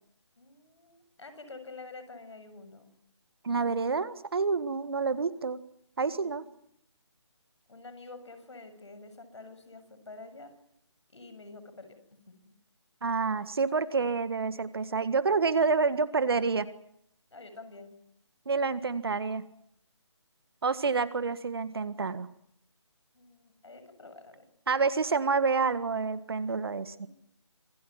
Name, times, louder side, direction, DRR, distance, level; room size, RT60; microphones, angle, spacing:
voice 1, 0.4-2.9 6.1-6.5 7.7-10.5 11.1-12.0 12.3-12.5 17.3-17.9 23.1-24.4 27.0-27.1, left 3 dB, 70° left, 10 dB, 7.3 m, -48 dB
voice 2, 3.4-5.6 6.0-6.4 13.0-16.7 18.5-19.5 20.6-22.3 24.7-27.1, right 4 dB, 55° right, 14 dB, 1.7 m, -28 dB
26.5 x 17.5 x 9.7 m, 0.72 s
figure-of-eight pair, 160°, 15 cm